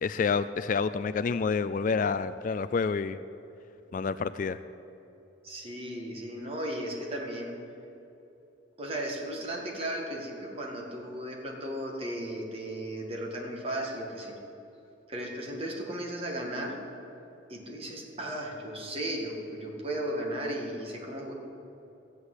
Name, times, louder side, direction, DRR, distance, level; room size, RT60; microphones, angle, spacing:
voice 1, 0.0-3.2 3.9-4.6, left 5 dB, 45° left, 14 dB, 0.3 m, -28 dB
voice 2, 5.4-7.6 8.8-14.4 15.1-16.8 17.5-21.3, right 1 dB, 30° right, 0 dB, 1.9 m, -35 dB
14.0 x 8.2 x 7.9 m, 2.9 s
head